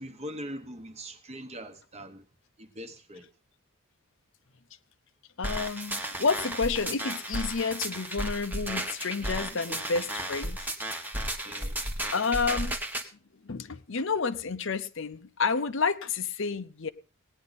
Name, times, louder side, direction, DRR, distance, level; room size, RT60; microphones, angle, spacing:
voice 1, 0.0-2.3 2.6-3.3 9.2-9.8 11.4-11.9, equal, 30° right, 1.1 m, -42 dB
voice 2, 5.4-10.7 12.1-12.8 13.4-16.9, left 4 dB, 55° left, 0.7 m, -30 dB
sound 1, 5.4-13.1, right 1 dB, 10° right, 1.1 m, -34 dB
18.0 x 9.9 x 4.1 m
head